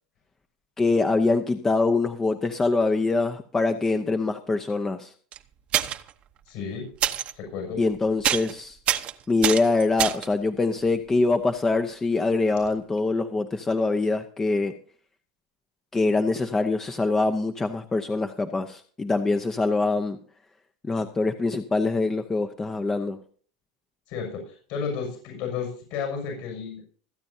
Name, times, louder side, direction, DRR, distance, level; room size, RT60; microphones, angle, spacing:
voice 1, 0.8-5.1 7.8-8.8 9.3-14.7 15.9-20.2 20.8-23.2, left 3 dB, 15° left, 8 dB, 0.8 m, -24 dB
sound 1, 5.3-5.4 5.7-6.1 7.0-7.3 7.7-8.0 8.2-8.5 8.9-10.3 12.6-12.7 13.0-13.1, right 11 dB, 40° right, 0.9 m, -25 dB
voice 2, 6.5-6.9 7.3-7.8 24.1-26.8, left 6 dB, 60° left, 2 dB, 6.6 m, -32 dB
26.0 x 8.9 x 2.7 m, 0.43 s
supercardioid pair, 120°, 3 cm